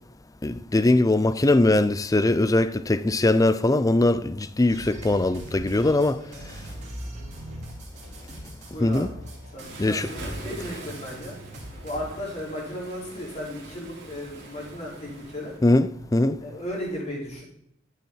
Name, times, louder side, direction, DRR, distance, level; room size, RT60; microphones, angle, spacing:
voice 1, 0.4-6.2 8.8-9.1 9.8-10.1 15.6-16.4, left 2 dB, 20° left, 0.5 m, -21 dB
sound 1, 4.7-12.0, right 1 dB, 40° right, 3.9 m, -41 dB
voice 2, 6.0-6.6 8.7-9.1 9.5-11.4 11.8-15.5 16.4-17.4, left 1 dB, 35° left, 4.5 m, -35 dB
Waves surf, 9.6-15.6, right 1 dB, 60° right, 3.8 m, -42 dB
13.5 x 8.0 x 4.6 m
head